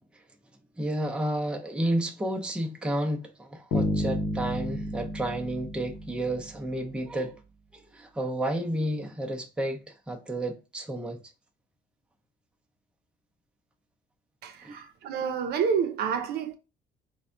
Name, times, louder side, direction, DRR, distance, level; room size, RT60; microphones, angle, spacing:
voice 1, 0.8-7.4 7.7-11.2 14.6-14.7, right 1 dB, 5° right, 0.5 m, -31 dB
sound 1, 3.7-6.7, left 1 dB, 85° left, 0.8 m, -31 dB
voice 2, 14.4-16.5, right 7 dB, 70° right, 0.5 m, -29 dB
3.3 x 2.2 x 2.5 m
cardioid pair, 110°, 17 cm